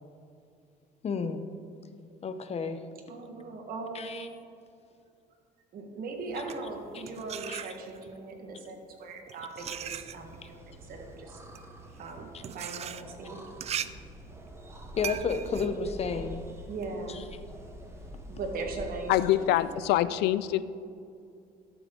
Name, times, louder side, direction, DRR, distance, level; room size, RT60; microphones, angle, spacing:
voice 1, 1.0-1.4 2.2-2.8 3.9-4.3 6.9-7.0 7.5-7.6 12.3-12.4 15.0-16.4 17.1-17.2, left 5 dB, 40° left, 9 dB, 0.7 m, -31 dB
voice 2, 3.1-4.3 5.7-10.6 10.9-11.4 12.0-13.4 16.7-17.2 18.3-19.5, right 3 dB, 60° right, 2 dB, 1.7 m, -39 dB
sound 1, 6.2-8.2 9.0-16.9, right 9 dB, 40° right, 0.4 m, -40 dB
sound 2, 9.6-19.7, equal, 15° right, 1.1 m, -46 dB
voice 3, 19.1-20.6, left 13 dB, 80° left, 16 dB, 0.4 m, -25 dB
12.5 x 7.2 x 3.9 m, 2.5 s
cardioid pair, 110°, 17 cm